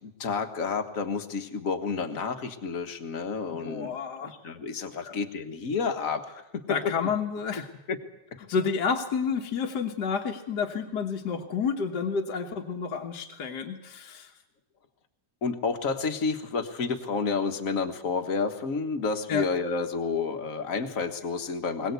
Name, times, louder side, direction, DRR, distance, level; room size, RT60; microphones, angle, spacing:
voice 1, 0.0-3.9 4.2-6.6 7.9-8.0 15.4-21.9, left 4 dB, 50° left, 6 dB, 1.8 m, -30 dB
voice 2, 3.6-4.3 5.0-5.2 6.7-7.7 8.5-14.3 19.3-19.5, left 6 dB, 70° left, 2 dB, 1.9 m, -30 dB
21.5 x 19.0 x 8.2 m, 0.91 s
omnidirectional pair, 1.9 m